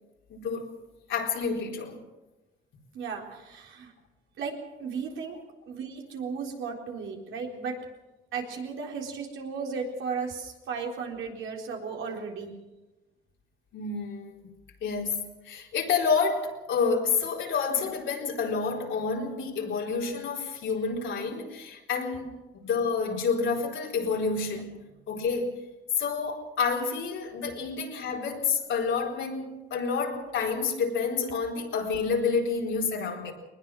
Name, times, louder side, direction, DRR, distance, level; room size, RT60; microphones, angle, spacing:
voice 1, 0.3-0.8 1.1-2.0 5.3-5.4 13.7-14.4 14.8-15.2 15.4-22.3 22.6-24.7 25.1-25.5 26.0-33.3, left 5 dB, 75° left, 0 dB, 4.2 m, -29 dB
voice 2, 2.9-3.9 4.4-5.4 5.7-7.8 8.3-12.5 27.4-27.5, right 5 dB, 80° right, 0 dB, 4.0 m, -35 dB
21.0 x 20.0 x 6.2 m, 1.1 s
cardioid pair, 90°, 20 cm